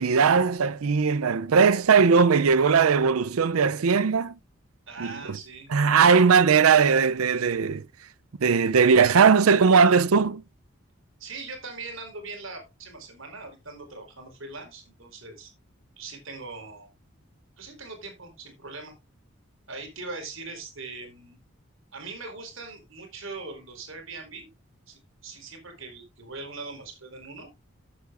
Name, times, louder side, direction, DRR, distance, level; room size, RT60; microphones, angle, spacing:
voice 1, 0.0-4.4 5.0-5.4 5.7-7.9 8.4-10.4, right 5 dB, 85° right, 0.5 m, -19 dB
voice 2, 4.9-5.7 11.2-15.5 16.0-16.9 17.6-18.9 19.7-21.4 21.9-24.5 24.9-27.5, right 3 dB, 70° right, 4.2 m, -41 dB
14.0 x 8.4 x 2.5 m
head